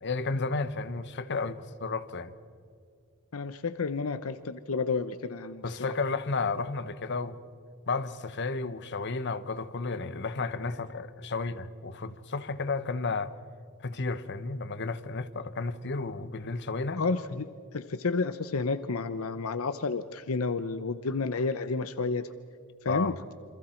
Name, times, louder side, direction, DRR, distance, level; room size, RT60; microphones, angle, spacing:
voice 1, 0.0-2.3 5.6-7.4 7.9-13.3 13.8-17.0 22.9-23.2, left 3 dB, 55° left, 1.0 m, -32 dB
voice 2, 3.3-5.8 17.0-22.3 22.8-23.3, left 4 dB, 75° left, 0.8 m, -31 dB
28.5 x 26.5 x 4.5 m
head